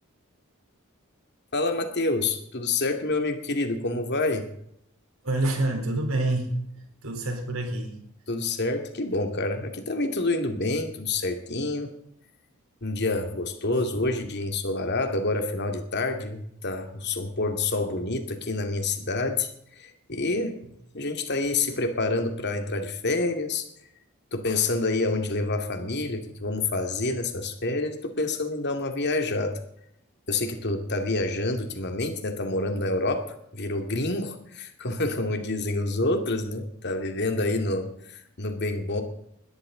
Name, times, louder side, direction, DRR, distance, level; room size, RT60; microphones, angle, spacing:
voice 1, 1.5-4.4 8.3-11.9 12.8-19.5 19.8-20.6 20.9-23.6 24.3-29.6 30.3-39.0, left 2 dB, 55° left, 5 dB, 2.4 m, -28 dB
voice 2, 5.2-6.5 7.0-8.0, right 2 dB, 90° right, 3 dB, 4.0 m, -27 dB
20.5 x 13.5 x 4.0 m, 0.73 s
head